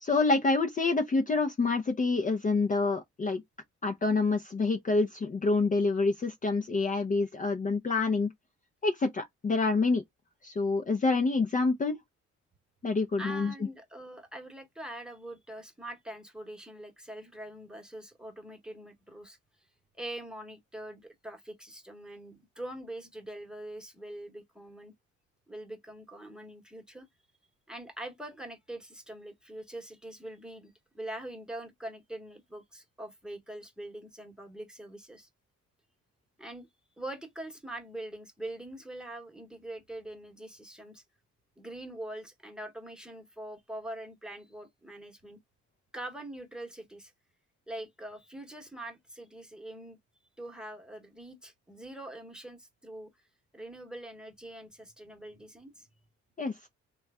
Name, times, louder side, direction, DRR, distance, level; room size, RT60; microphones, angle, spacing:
voice 1, 0.0-3.4 3.8-8.3 8.8-10.0 10.4-12.0 12.8-13.5 56.4-56.7, left 3 dB, 25° left, 0.6 m, -27 dB
voice 2, 13.2-19.4 19.9-24.9 25.5-27.1 27.7-35.3 36.4-36.7 37.0-41.0 41.6-45.4 45.9-47.1 47.7-50.0 50.4-53.2 53.5-55.9, right 1 dB, 5° right, 1.1 m, -43 dB
3.1 x 2.3 x 3.4 m
cardioid pair, 90°, 30 cm